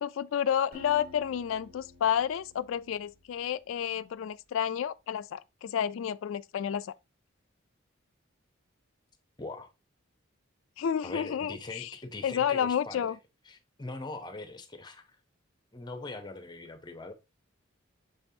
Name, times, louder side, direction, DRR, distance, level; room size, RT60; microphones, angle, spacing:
voice 1, 0.0-6.9 10.8-11.9 12.2-13.2, left 9 dB, 75° left, 0.3 m, -30 dB
Acoustic guitar, 0.7-3.7, left 2 dB, 45° right, 1.8 m, -52 dB
voice 2, 9.4-9.7 11.0-13.2 13.5-15.2 15.7-17.1, left 2 dB, 20° left, 0.7 m, -42 dB
6.7 x 5.2 x 2.7 m
head